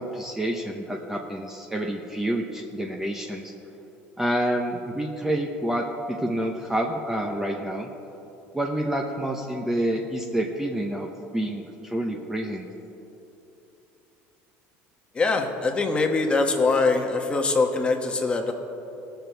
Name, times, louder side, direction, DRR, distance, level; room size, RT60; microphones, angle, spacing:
voice 1, 0.0-3.5 4.2-7.9 8.5-12.7, right 1 dB, 5° right, 2 dB, 0.8 m, -28 dB
voice 2, 15.1-18.5, left 3 dB, 20° left, 4 dB, 1.1 m, -23 dB
17.5 x 6.9 x 4.6 m, 3.0 s
cardioid pair, 125°, 5 cm